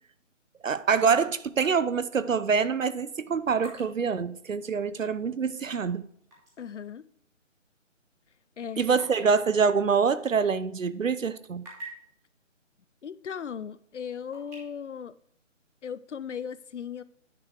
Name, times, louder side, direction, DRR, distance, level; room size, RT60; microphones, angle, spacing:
voice 1, 0.6-6.1 8.8-11.7, right 5 dB, 85° right, 0.7 m, -25 dB
sound 1, 3.6-6.6 7.0-7.1 7.7-10.8 11.2-12.2 13.2-13.3 13.7-14.6, right 2 dB, 5° right, 1.4 m, -49 dB
voice 2, 6.6-7.1 8.6-9.0 13.0-15.1 15.8-17.0, left 7 dB, 65° left, 0.5 m, -37 dB
9.2 x 5.0 x 4.6 m
figure-of-eight pair, 150°, 38 cm